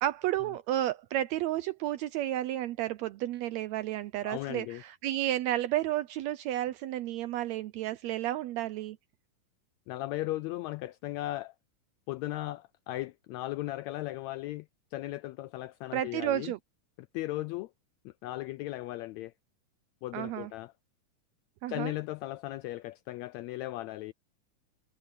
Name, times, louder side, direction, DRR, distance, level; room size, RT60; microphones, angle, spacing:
voice 1, 0.0-9.0 15.9-16.6 20.1-20.5 21.6-21.9, right 13 dB, 80° right, 1.6 m, -32 dB
voice 2, 4.2-4.8 9.9-11.5 12.1-16.5 17.0-17.7 18.0-19.3 20.0-20.7 21.7-24.1, left 17 dB, 80° left, 1.6 m, -37 dB
omnidirectional pair, 3.6 m